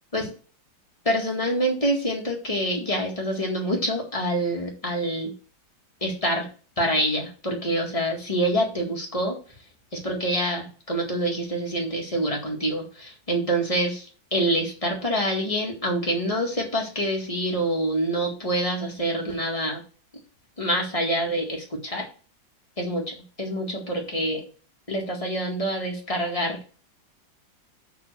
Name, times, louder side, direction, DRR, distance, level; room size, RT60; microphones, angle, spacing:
voice 1, 1.1-5.3 6.0-6.5 6.8-9.4 9.9-19.8 20.6-22.1 22.8-24.4 24.9-26.6, right 1 dB, 20° left, 0 dB, 2.0 m, -26 dB
7.2 x 4.1 x 6.7 m, 0.38 s
omnidirectional pair, 2.1 m